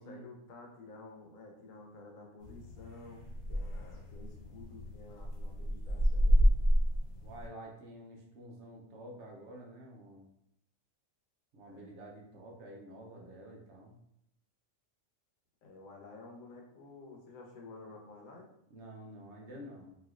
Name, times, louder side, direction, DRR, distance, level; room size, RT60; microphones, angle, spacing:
voice 1, 0.0-6.6 11.6-11.9 15.6-18.5, left 3 dB, 85° left, 0 dB, 1.1 m, -52 dB
sound 1, 2.4-7.5, equal, 65° left, 1.0 m, -30 dB
voice 2, 7.2-10.3 11.5-14.0 18.7-19.9, right 1 dB, 65° right, 0 dB, 0.9 m, -49 dB
3.2 x 2.7 x 2.4 m, 0.78 s
omnidirectional pair, 1.4 m